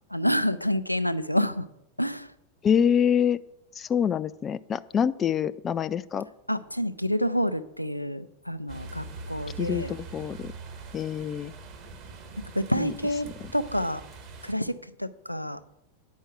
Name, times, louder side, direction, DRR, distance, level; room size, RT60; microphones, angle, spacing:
voice 1, 0.1-1.7 2.0-2.3 6.5-9.9 12.5-14.0 14.4-14.7 15.0-15.6, equal, 90° left, 13 dB, 0.5 m, -28 dB
voice 2, 2.6-3.4 3.8-6.3 9.6-10.5 10.9-11.5 12.8-12.9, left 8 dB, 25° left, 15 dB, 0.3 m, -25 dB
sound 1, 8.7-14.5, right 4 dB, 40° right, 1.6 m, -43 dB
9.4 x 5.5 x 7.7 m, 0.83 s
figure-of-eight pair, 90°, 0 cm